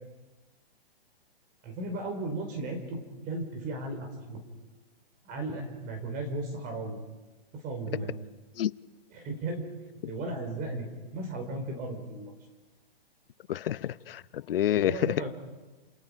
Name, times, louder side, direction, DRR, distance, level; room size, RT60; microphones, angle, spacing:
voice 1, 1.6-4.4 5.2-7.0 7.6-8.1 9.1-9.6 10.1-12.3 14.8-15.3, right 2 dB, 25° right, 4 dB, 5.0 m, -35 dB
voice 2, 13.5-15.3, left 11 dB, 65° left, 17 dB, 0.8 m, -28 dB
29.0 x 28.5 x 5.2 m, 1.2 s
hypercardioid pair, 145°, 31 cm